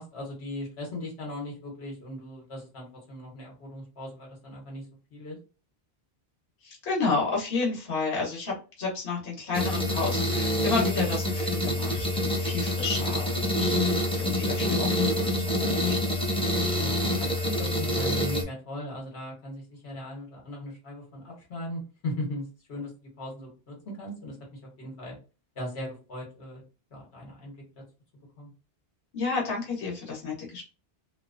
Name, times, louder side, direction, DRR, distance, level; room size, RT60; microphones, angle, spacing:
voice 1, 0.0-4.8 5.1-5.4 16.8-22.9 23.2-25.1 25.5-26.6 26.9-27.5 28.4-28.5, left 1 dB, 85° left, -1 dB, 1.3 m, -38 dB
voice 2, 6.6-16.0 29.1-30.6, left 4 dB, 60° left, -3 dB, 1.2 m, -31 dB
sound 1, 9.5-18.4, left 1 dB, 10° left, 0.4 m, -26 dB
2.9 x 2.1 x 2.5 m, 0.32 s
omnidirectional pair, 1.1 m